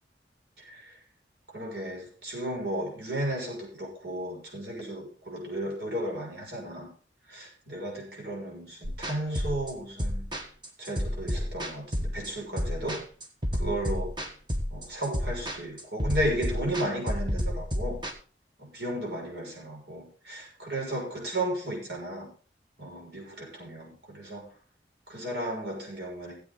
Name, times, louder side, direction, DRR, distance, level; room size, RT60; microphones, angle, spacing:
voice 1, 0.6-1.0 1.5-6.9 7.3-10.3 10.8-13.0 13.5-14.2 14.7-18.0 18.6-22.3 22.8-24.5 25.1-26.3, right 1 dB, 70° right, 0 dB, 6.6 m, -34 dB
sound 1, 8.8-18.1, equal, 25° right, 1.5 m, -31 dB
16.5 x 8.4 x 4.1 m, 0.38 s
head